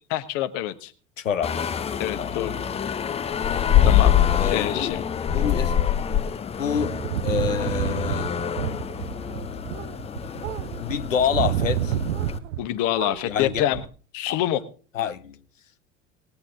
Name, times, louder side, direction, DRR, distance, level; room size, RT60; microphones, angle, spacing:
voice 1, 0.1-0.9 2.0-2.6 3.8-4.2 4.5-5.0 12.6-13.8 14.1-14.6, left 13 dB, 50° left, 1.3 m, -26 dB
voice 2, 1.2-1.5 2.2-2.3 4.3-4.9 5.3-5.7 6.6-7.0 7.2-8.3 10.8-12.0 13.2-13.6 14.3-14.4 14.9-15.4, left 8 dB, 75° left, 0.9 m, -27 dB
sound 1, 1.4-12.4, left 9 dB, 15° left, 0.5 m, -25 dB
sound 2, 6.8-12.7 12.9-13.9, right 12 dB, 65° right, 0.8 m, -30 dB
19.5 x 8.6 x 3.7 m
figure-of-eight pair, 70°, 38 cm